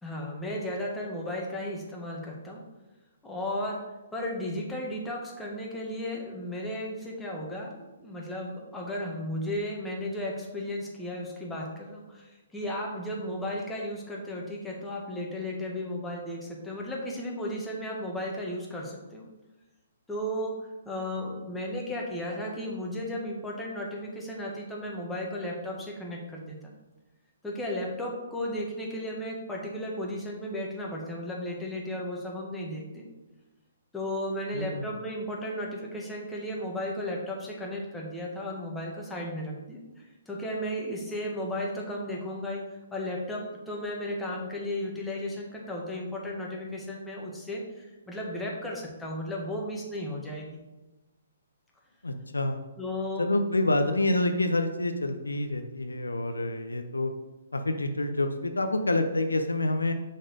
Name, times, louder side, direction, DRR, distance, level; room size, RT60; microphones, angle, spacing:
voice 1, 0.0-2.6 3.2-3.8 4.1-19.3 20.1-26.7 27.4-33.1 33.9-42.6 42.9-50.6 52.8-53.3, left 1 dB, 5° left, -3 dB, 1.5 m, -34 dB
voice 2, 34.5-34.9 52.0-52.6 53.2-57.1 57.5-59.9, left 2 dB, 85° left, 6 dB, 0.7 m, -27 dB
6.4 x 4.2 x 5.2 m, 1.1 s
figure-of-eight pair, 130°, 0 cm